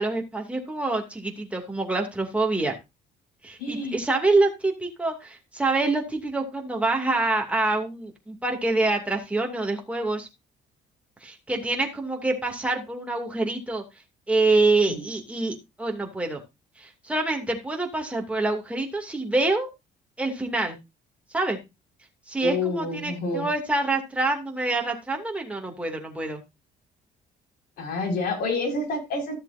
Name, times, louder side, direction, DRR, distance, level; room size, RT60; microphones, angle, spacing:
voice 1, 0.0-2.7 3.4-10.3 11.2-13.8 14.3-16.4 16.8-19.7 20.2-20.8 21.3-21.6 22.3-26.4, right 2 dB, 5° right, 1 dB, 2.6 m, -26 dB
voice 2, 3.6-4.0 14.9-15.0 22.4-23.5 27.8-29.3, left 2 dB, 65° left, 2 dB, 5.6 m, -28 dB
14.0 x 7.3 x 2.7 m, 0.23 s
cardioid pair, 110°, 17 cm